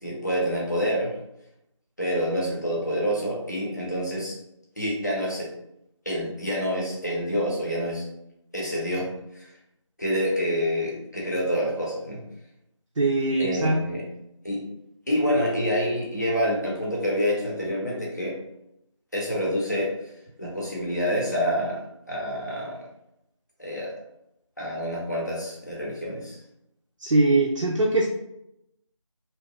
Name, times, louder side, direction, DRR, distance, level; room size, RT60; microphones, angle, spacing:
voice 1, 0.0-1.1 2.0-4.4 4.8-5.5 6.1-8.0 8.5-9.1 10.0-12.2 13.4-14.0 14.4-14.6 15.1-18.4 19.1-19.9 20.4-21.8 22.1-22.8 23.6-23.9 24.6-26.4, equal, 35° left, -4 dB, 0.6 m, -27 dB
voice 2, 13.0-13.8 27.0-28.1, right 2 dB, 75° right, 0 dB, 0.4 m, -21 dB
2.7 x 2.2 x 2.3 m, 0.82 s
figure-of-eight pair, 170°, 16 cm